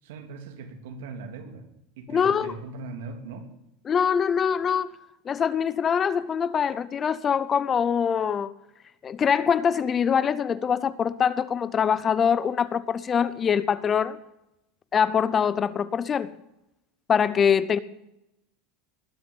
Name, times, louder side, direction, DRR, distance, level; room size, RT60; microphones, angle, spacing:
voice 1, 0.0-1.7 2.0-3.5, right 4 dB, 80° right, 2.9 m, -39 dB
voice 2, 2.1-2.5 3.9-4.9 5.3-8.5 9.0-14.2 14.9-16.3 17.1-17.8, left 7 dB, 20° left, 0.5 m, -24 dB
20.0 x 6.9 x 9.7 m
supercardioid pair, 165°, 0 cm